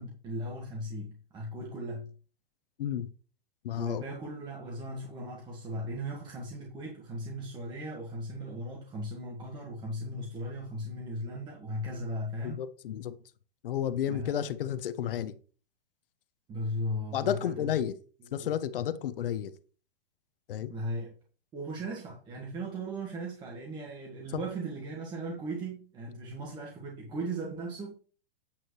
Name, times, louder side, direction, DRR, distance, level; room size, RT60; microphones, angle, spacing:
voice 1, 0.0-2.1 3.7-12.6 14.1-14.4 16.5-17.7 18.2-18.5 20.7-21.2 21.5-27.9, right 1 dB, 15° right, 1.6 m, -37 dB
voice 2, 2.8-3.1 3.6-4.0 12.4-13.2 13.6-15.3 17.1-17.9 18.3-19.5 20.5-20.7, left 10 dB, 65° left, 0.9 m, -32 dB
8.7 x 7.5 x 3.1 m
hypercardioid pair, 160°, 29 cm